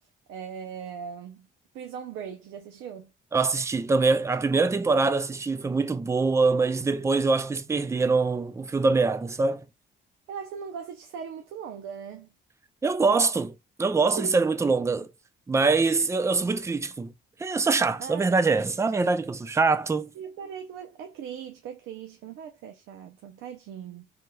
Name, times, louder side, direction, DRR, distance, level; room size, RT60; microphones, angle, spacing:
voice 1, 0.3-1.5 1.7-3.1 10.3-12.3 14.0-14.4 18.0-18.4 20.1-24.1, right 7 dB, 90° right, 0.5 m, -39 dB
voice 2, 3.3-9.6 12.8-15.1 15.5-17.1 17.4-20.1, right 4 dB, 15° right, 0.4 m, -24 dB
3.4 x 3.0 x 2.2 m
cardioid pair, 90°, 20 cm